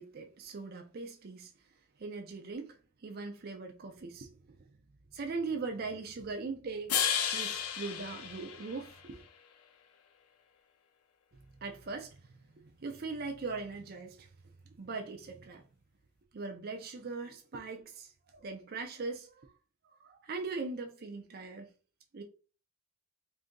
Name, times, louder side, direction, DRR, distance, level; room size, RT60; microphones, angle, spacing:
voice 1, 0.0-1.5 2.0-4.6 5.1-9.2 11.6-12.2 12.5-14.3 14.8-15.6 16.3-19.5 20.0-21.7 22.1-22.2, right 4 dB, 45° right, 0.5 m, -40 dB
sound 1, 6.9-9.2, left 8 dB, 85° left, 0.5 m, -33 dB
2.7 x 2.5 x 3.6 m
head